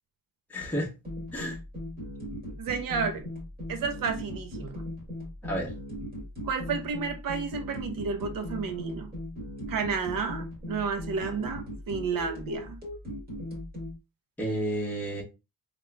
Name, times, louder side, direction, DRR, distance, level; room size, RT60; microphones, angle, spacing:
voice 1, 0.5-0.9 1.3-1.6 5.4-5.7 14.4-15.2, equal, 5° left, 1.1 m, -31 dB
sound 1, 1.0-13.9, left 1 dB, 25° right, 1.9 m, -38 dB
voice 2, 2.6-3.3 3.7-4.8 6.5-9.1 9.7-12.8, right 5 dB, 75° right, 1.0 m, -31 dB
3.5 x 3.4 x 2.3 m
cardioid pair, 135°, 34 cm